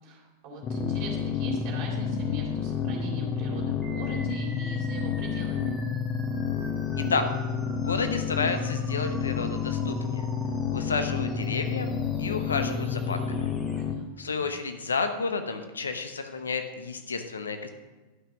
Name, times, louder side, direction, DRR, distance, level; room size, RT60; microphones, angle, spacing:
voice 1, 0.0-5.8 13.7-14.4, equal, 40° right, -3 dB, 3.6 m, -39 dB
sound 1, 0.6-13.9, left 6 dB, 30° left, 0.8 m, -30 dB
sound 2, 3.8-13.8, equal, ahead, 2.2 m, -47 dB
voice 2, 7.0-7.3 7.7-10.3 10.7-11.9 12.2-13.5 14.2-17.7, left 4 dB, 70° left, 8 dB, 0.9 m, -31 dB
11.5 x 5.9 x 6.2 m, 1.2 s
figure-of-eight pair, 90°, 0 cm